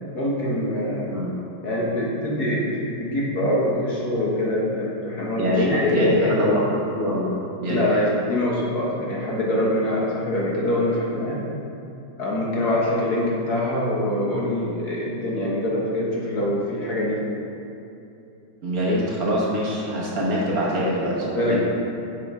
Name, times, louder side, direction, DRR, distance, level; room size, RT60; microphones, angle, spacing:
voice 1, 0.1-1.2 1.6-6.3 7.7-11.4 12.2-17.2 21.2-21.6, left 1 dB, 55° left, -4 dB, 1.7 m, -24 dB
voice 2, 5.4-7.9 18.6-21.6, equal, 50° right, -4 dB, 1.6 m, -24 dB
9.7 x 6.2 x 3.6 m, 2.8 s
omnidirectional pair, 2.1 m